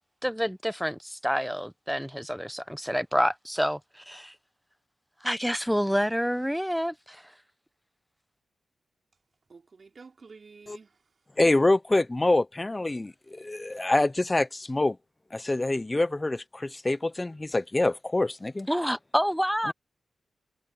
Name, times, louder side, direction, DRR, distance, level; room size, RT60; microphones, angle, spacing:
voice 1, 0.2-4.3 5.2-7.3 18.7-19.7, equal, ahead, 0.9 m, -28 dB
voice 2, 9.5-11.0, right 4 dB, 55° right, 5.6 m, -50 dB
voice 3, 11.4-15.0 15.3-18.7 19.7-19.8, left 2 dB, 25° left, 0.8 m, -26 dB
cardioid pair, 55°, 0 cm